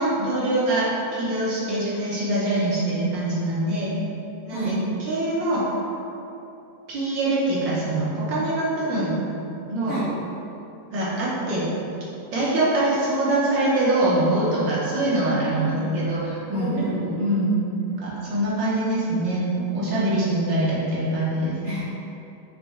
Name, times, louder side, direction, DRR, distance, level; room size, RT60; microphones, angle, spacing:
voice 1, 0.0-3.9 4.4-4.8 5.1-5.7 6.9-9.2 9.7-10.0 10.9-11.7 12.3-16.8 17.2-17.5 18.0-21.5, right 1 dB, 80° right, -7 dB, 1.8 m, -24 dB
voice 2, 4.5-4.8 9.9-10.1 15.6-15.9 16.5-17.2 21.6-21.8, right 1 dB, 50° left, -10 dB, 0.9 m, -30 dB
5.1 x 3.0 x 3.2 m, 2.8 s
omnidirectional pair, 2.0 m